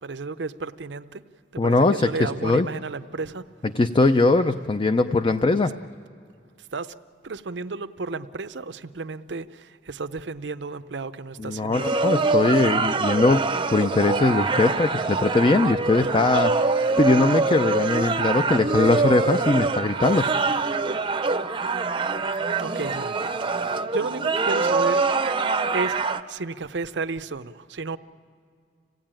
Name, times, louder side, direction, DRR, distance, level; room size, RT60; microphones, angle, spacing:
voice 1, 0.0-1.2 1.5-3.4 5.5-5.6 6.7-6.9 7.2-12.2 22.6-23.6 23.9-28.0, right 4 dB, 80° right, 12 dB, 0.7 m, -33 dB
voice 2, 1.6-2.7 3.7-5.8 11.4-20.7, left 3 dB, 30° left, 9 dB, 0.5 m, -21 dB
sound 1, 11.7-26.2, right 4 dB, 30° right, 0.7 m, -24 dB
26.5 x 17.5 x 8.9 m, 2.3 s
head